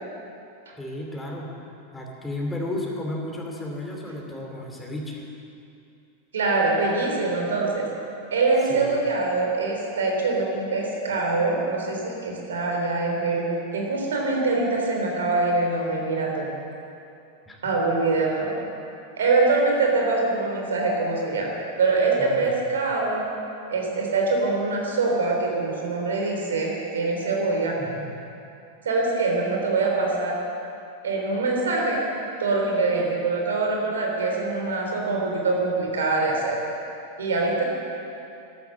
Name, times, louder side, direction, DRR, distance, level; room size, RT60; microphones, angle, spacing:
voice 1, 0.8-1.5 1.9-5.2 8.7-9.0 17.5-17.6 22.2-22.6 27.8-28.1, left 1 dB, 10° left, -1 dB, 2.8 m, -33 dB
voice 2, 6.3-7.9 8.3-16.5 17.6-18.6 19.2-23.2 23.7-27.8 28.8-30.4 31.0-32.0 32.4-36.6 37.2-37.6, right 3 dB, 65° right, 0 dB, 3.6 m, -24 dB
13.0 x 12.5 x 7.6 m, 2.7 s
figure-of-eight pair, 90°, 0 cm